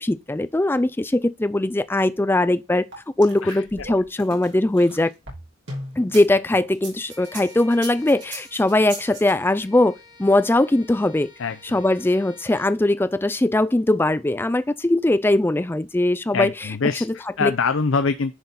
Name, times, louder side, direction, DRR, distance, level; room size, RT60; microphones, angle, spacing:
voice 1, 0.0-2.9 3.2-5.1 6.0-11.3 11.7-16.5 17.4-17.5, left 1 dB, 10° left, 0.3 m, -20 dB
sound 1, 2.9-6.2 6.7-9.3, right 2 dB, 60° right, 3.4 m, -37 dB
Bowed string instrument, 7.1-12.8, left 2 dB, 20° right, 2.1 m, -49 dB
voice 2, 11.4-11.8 16.3-18.4, left 4 dB, 70° left, 0.6 m, -24 dB
10.5 x 4.3 x 4.0 m
head